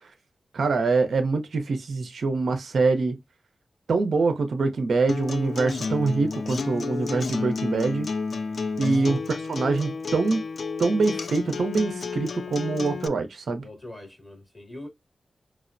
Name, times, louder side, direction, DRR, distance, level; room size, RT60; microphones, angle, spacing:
voice 1, 0.5-3.2 3.9-8.1 8.8-9.2 9.5-10.4 10.8-13.6, right 3 dB, 80° right, 0.5 m, -24 dB
Acoustic guitar, 5.1-13.1, left 4 dB, 70° left, 0.3 m, -31 dB
voice 2, 13.6-14.9, left 1 dB, 25° left, 2.1 m, -42 dB
4.6 x 2.0 x 2.5 m
cardioid pair, 45°, 0 cm